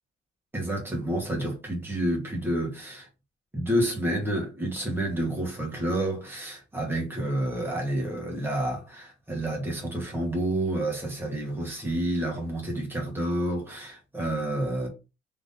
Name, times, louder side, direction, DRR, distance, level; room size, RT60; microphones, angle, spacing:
voice 1, 0.5-3.1 3.5-14.9, right 1 dB, 10° right, 1.4 m, -29 dB
3.6 x 3.0 x 4.1 m
cardioid pair, 170°, 21 cm